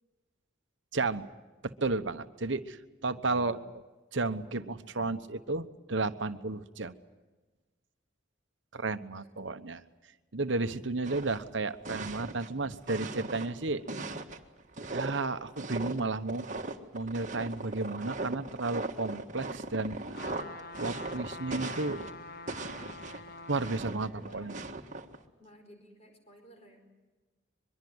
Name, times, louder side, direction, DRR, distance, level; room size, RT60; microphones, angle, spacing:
voice 1, 0.9-1.3 1.6-3.8 4.1-6.9 8.7-9.8 10.3-13.8 14.9-16.5 16.9-20.2 20.8-22.1 23.5-24.6, right 3 dB, 65° right, 10 dB, 1.1 m, -33 dB
voice 2, 3.1-3.6 23.8-24.6 25.4-26.8, equal, 35° left, 4 dB, 4.7 m, -56 dB
sound 1, 11.0-13.5 13.9-22.2 22.5-25.2, right 2 dB, 40° right, 1.6 m, -39 dB
sound 2, 20.1-23.8 24.3-24.4, left 3 dB, 50° left, 1.0 m, -45 dB
23.5 x 22.5 x 8.0 m, 1.2 s
head